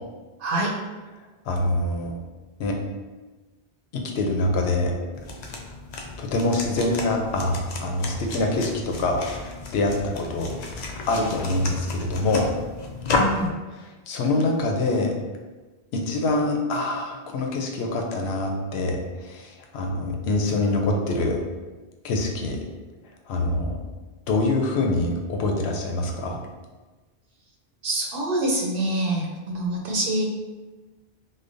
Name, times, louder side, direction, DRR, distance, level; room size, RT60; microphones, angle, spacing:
voice 1, 0.4-0.7 13.2-13.5 27.8-30.3, right 1 dB, 65° right, -1 dB, 0.8 m, -25 dB
voice 2, 1.4-2.2 2.6-2.8 3.9-4.9 6.2-12.5 14.1-15.1 15.9-21.4 22.0-22.6 23.3-23.8 24.3-26.4, left 2 dB, 80° left, 2 dB, 0.8 m, -25 dB
sound 1, 5.1-13.5, left 3 dB, 55° left, 0.5 m, -32 dB
5.0 x 2.2 x 2.5 m, 1.2 s
omnidirectional pair, 1.1 m